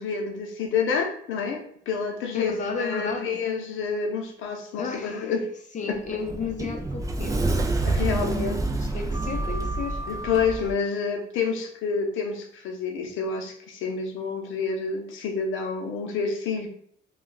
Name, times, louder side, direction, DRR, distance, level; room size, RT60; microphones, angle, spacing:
voice 1, 0.0-5.5 5.9-6.2 7.8-8.6 10.1-16.7, left 5 dB, 80° left, 3 dB, 0.7 m, -28 dB
voice 2, 2.3-3.4 4.8-5.3 5.7-7.6 8.7-10.0, left 5 dB, 40° left, 5 dB, 0.6 m, -33 dB
Sliding door, 5.9-10.7, right 2 dB, 15° right, 0.4 m, -27 dB
2.3 x 2.2 x 3.8 m, 0.65 s
cardioid pair, 90°, 20 cm